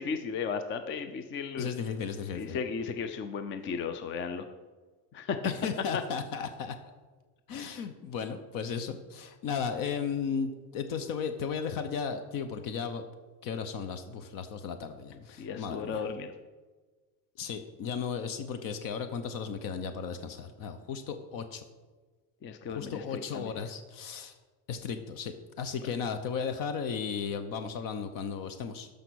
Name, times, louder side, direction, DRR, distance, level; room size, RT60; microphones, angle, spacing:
voice 1, 0.0-1.7 2.3-4.4 5.1-5.4 5.9-6.0 15.4-16.3 22.4-23.5 25.8-25.9, left 6 dB, 30° left, 8 dB, 0.5 m, -35 dB
voice 2, 1.6-2.6 5.4-6.8 7.5-13.0 13.4-16.0 17.4-21.6 22.7-24.3 24.7-28.9, left 6 dB, 55° left, 9 dB, 0.8 m, -35 dB
12.5 x 5.2 x 6.3 m, 1.4 s
cardioid pair, 175°, 39 cm